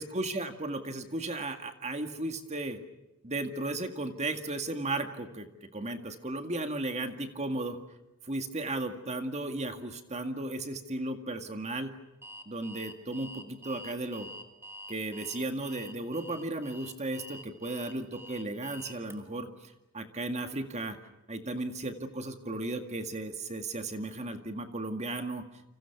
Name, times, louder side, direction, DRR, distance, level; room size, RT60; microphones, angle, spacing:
voice 1, 0.0-2.8 3.2-5.5 5.7-7.8 8.2-11.9 12.5-14.3 14.9-21.0 21.3-25.4, right 2 dB, 30° right, 7 dB, 2.0 m, -35 dB
Alarm, 12.2-19.1, equal, 10° right, 2.6 m, -47 dB
30.0 x 26.5 x 6.0 m, 0.97 s
head